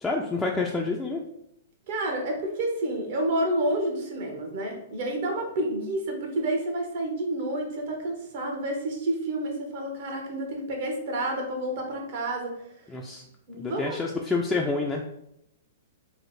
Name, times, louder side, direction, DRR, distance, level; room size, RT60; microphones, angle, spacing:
voice 1, 0.0-1.2 12.9-13.2 13.6-15.0, left 3 dB, 10° left, -2 dB, 0.3 m, -28 dB
voice 2, 1.9-12.6 13.5-14.0, right 1 dB, 55° right, 1 dB, 0.9 m, -29 dB
3.1 x 2.0 x 4.0 m, 0.78 s
hypercardioid pair, 130°, 0 cm